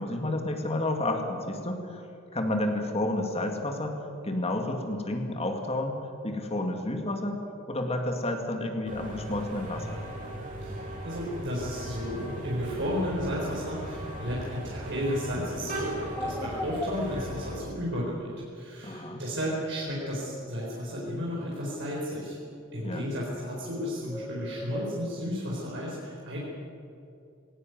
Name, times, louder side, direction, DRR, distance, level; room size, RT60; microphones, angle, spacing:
voice 1, 0.0-2.0 2.3-7.4 7.7-10.0 18.8-19.2 22.8-23.0, left 1 dB, 30° left, 4 dB, 2.1 m, -31 dB
sound 1, 8.9-17.6, right 1 dB, 40° right, 5.3 m, -38 dB
voice 2, 10.6-22.4 22.7-26.4, equal, 60° right, -4 dB, 4.3 m, -33 dB
sound 2, 16.1-25.3, equal, 5° left, 0.5 m, -41 dB
19.5 x 18.0 x 9.3 m, 2.7 s
head